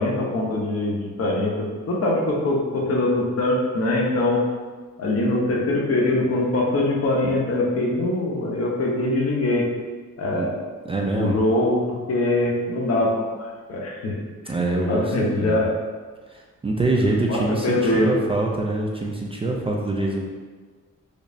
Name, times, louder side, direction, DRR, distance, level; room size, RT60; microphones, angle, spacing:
voice 1, 0.0-4.4 5.0-9.7 10.2-10.5 11.1-13.3 13.7-14.1 14.9-15.7 17.3-18.1, left 2 dB, 55° left, -2 dB, 0.8 m, -22 dB
voice 2, 10.9-11.4 14.5-15.6 16.3-20.2, right 2 dB, 20° right, -2 dB, 0.3 m, -24 dB
5.1 x 2.0 x 2.6 m, 1.4 s
cardioid pair, 105°, 29 cm